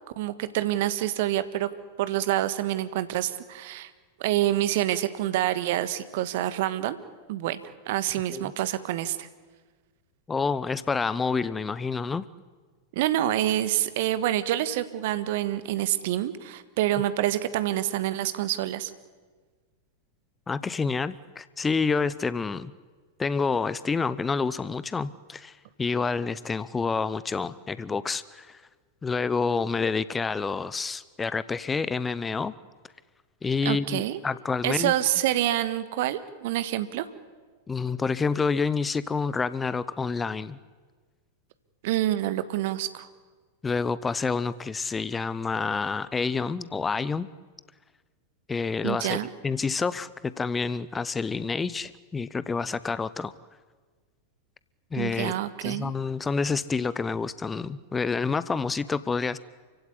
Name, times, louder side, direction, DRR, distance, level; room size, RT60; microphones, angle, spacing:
voice 1, 0.2-1.7 2.0-3.9 4.2-7.0 7.3-9.3 12.9-18.9 33.6-34.2 34.6-37.1 41.8-43.1 48.8-49.3 55.0-55.9, right 13 dB, 55° right, 13 dB, 1.5 m, -27 dB
voice 2, 10.3-12.3 20.5-22.7 23.2-28.6 29.0-32.5 33.4-34.9 37.7-40.6 43.6-47.3 48.5-53.3 54.9-55.3 55.6-59.4, left 4 dB, 15° left, 17 dB, 0.7 m, -28 dB
28.5 x 16.0 x 9.9 m, 1.5 s
figure-of-eight pair, 90°, 0 cm